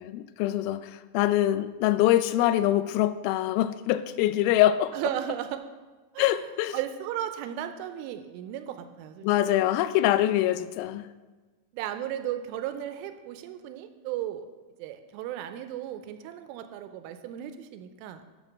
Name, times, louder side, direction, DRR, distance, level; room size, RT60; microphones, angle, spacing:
voice 1, 0.0-4.9 6.2-6.7 9.2-11.1, left 13 dB, 90° left, 3.3 m, -24 dB
voice 2, 4.9-5.7 6.1-6.5 6.7-9.3 11.7-14.5 14.8-18.3, right 11 dB, 85° right, 3.0 m, -35 dB
12.5 x 7.1 x 6.2 m
omnidirectional pair, 5.9 m